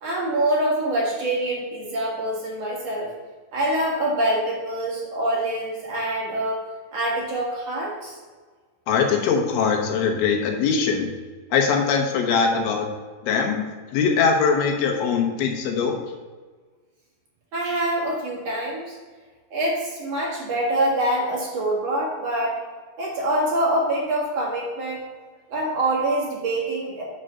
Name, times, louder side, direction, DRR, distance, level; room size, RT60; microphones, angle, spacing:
voice 1, 0.0-3.1 3.5-6.6 6.9-8.2 17.5-19.0 19.5-22.5 23.0-25.0 25.5-27.0, right 1 dB, 45° right, -4 dB, 2.6 m, -25 dB
voice 2, 8.9-11.1 11.5-12.9 13.2-13.7 13.9-16.0, left 5 dB, 70° left, 2 dB, 2.9 m, -21 dB
7.8 x 5.0 x 6.7 m, 1.4 s
omnidirectional pair, 5.0 m